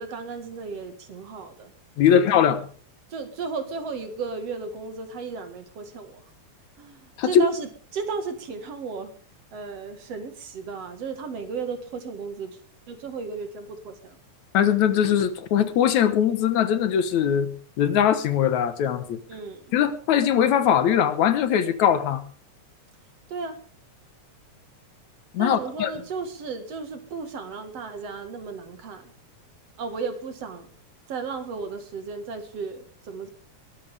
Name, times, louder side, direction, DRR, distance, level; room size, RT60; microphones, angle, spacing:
voice 1, 0.0-1.7 2.1-2.5 3.1-6.2 6.8-9.1 9.5-12.5 12.9-14.2 19.3-19.7 23.3-23.6 25.4-29.1 29.8-30.7 31.1-33.3, right 4 dB, 60° right, 7 dB, 2.6 m, -34 dB
voice 2, 2.0-2.6 7.2-7.5 14.5-17.5 17.8-19.2 19.7-22.2 25.3-25.9, left 9 dB, 75° left, 11 dB, 2.5 m, -21 dB
21.0 x 13.5 x 3.5 m, 0.42 s
omnidirectional pair, 3.4 m